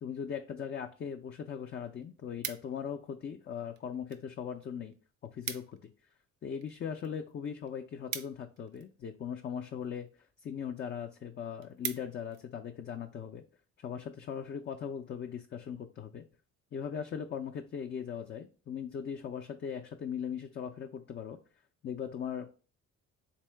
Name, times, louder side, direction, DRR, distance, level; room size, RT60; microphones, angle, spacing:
voice 1, 0.0-4.9 5.2-5.9 6.4-10.1 10.4-13.4 13.8-16.2 16.7-21.4 21.8-22.5, left 7 dB, 35° left, 4 dB, 0.4 m, -39 dB
sound 1, 1.2-1.3 1.7-3.0 3.7-4.3 4.6-4.7 4.9-5.0 5.2-5.9 6.2-9.1 9.8-10.1 10.6-10.7 11.1-11.2 11.4-12.4 12.9-13.1, right 9 dB, 80° right, 0.5 m, -42 dB
3.7 x 2.7 x 3.3 m, 0.37 s
cardioid pair, 90°, 30 cm